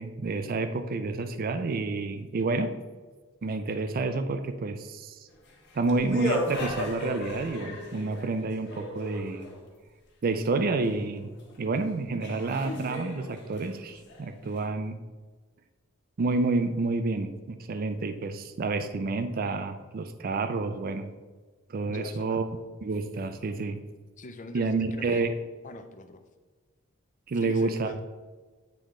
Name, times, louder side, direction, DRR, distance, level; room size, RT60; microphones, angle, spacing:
voice 1, 0.0-2.7 3.4-5.3 5.7-9.5 10.2-11.3 11.6-15.0 16.2-21.1 21.7-22.5 22.8-23.8 24.5-25.3 27.3-28.0, right 3 dB, 45° right, 9 dB, 0.4 m, -29 dB
sound 1, 5.4-9.7 11.5-11.6 12.2-14.6, left 1 dB, 55° left, 1.3 m, -36 dB
voice 2, 21.8-22.4 24.2-25.3 25.6-26.2 27.4-28.0, left 2 dB, 40° left, 7 dB, 0.6 m, -42 dB
9.1 x 3.3 x 3.7 m, 1.3 s
head